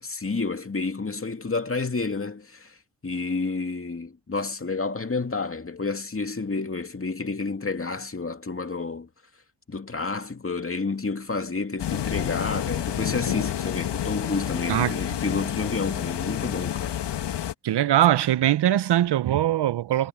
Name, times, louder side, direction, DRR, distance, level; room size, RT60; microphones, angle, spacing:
voice 1, 0.0-2.8 3.0-9.1 9.7-16.9, left 4 dB, 30° left, 2.5 m, -30 dB
sound 1, 11.8-17.5, left 10 dB, 70° left, 1.8 m, -29 dB
voice 2, 17.6-20.1, right 12 dB, 65° right, 0.9 m, -21 dB
supercardioid pair, 45°, 43 cm